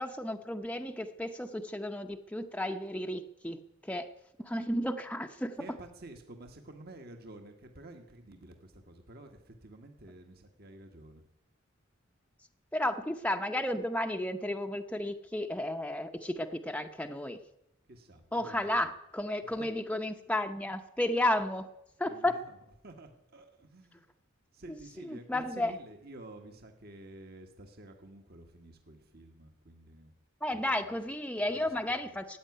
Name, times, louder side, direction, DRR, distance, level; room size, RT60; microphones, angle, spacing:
voice 1, 0.0-4.1 4.4-5.6 12.7-17.4 18.3-21.7 22.0-22.3 25.0-25.7 30.4-32.4, left 1 dB, 5° left, 5 dB, 0.7 m, -33 dB
voice 2, 5.6-11.2 17.9-18.9 19.4-19.7 22.0-22.6 22.8-24.1 24.5-30.1 30.5-31.0 31.5-32.2, right 2 dB, 50° right, 4 dB, 1.6 m, -51 dB
14.5 x 8.8 x 9.5 m, 0.85 s
head